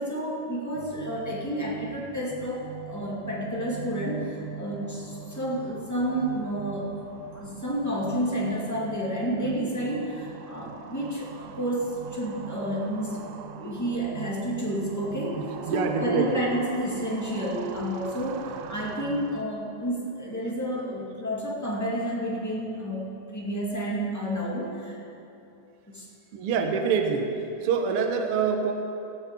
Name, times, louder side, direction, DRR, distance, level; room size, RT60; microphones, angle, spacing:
voice 1, 0.0-7.0 7.3-13.2 13.6-25.0 25.9-26.1, equal, 5° left, -4 dB, 1.4 m, -30 dB
sound 1, 0.7-19.4, right 9 dB, 85° right, 2.2 m, -42 dB
voice 2, 15.4-16.5 26.3-27.3 27.6-28.7, right 6 dB, 65° right, 4 dB, 1.5 m, -26 dB
16.0 x 7.2 x 7.4 m, 2.8 s
omnidirectional pair, 3.6 m